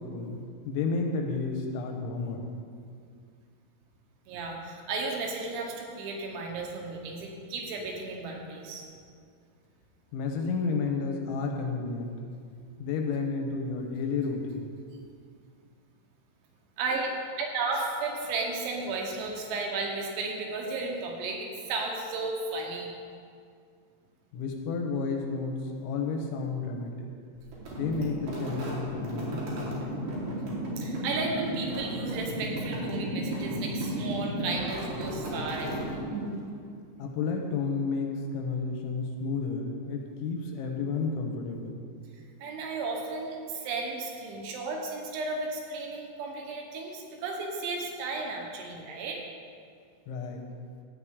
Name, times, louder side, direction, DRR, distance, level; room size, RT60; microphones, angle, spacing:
voice 1, 0.0-2.5 10.1-12.1 12.8-14.7 24.3-27.1 27.7-29.4 37.0-41.8 50.1-50.5, left 4 dB, 85° left, 2 dB, 3.3 m, -31 dB
voice 2, 4.3-8.9 16.8-22.9 30.8-35.9 42.4-49.2, right 3 dB, 80° right, 0 dB, 3.4 m, -34 dB
sound 1, 27.5-36.5, right 1 dB, 60° right, 3.8 m, -34 dB
13.0 x 8.7 x 3.6 m, 2.2 s
omnidirectional pair, 5.4 m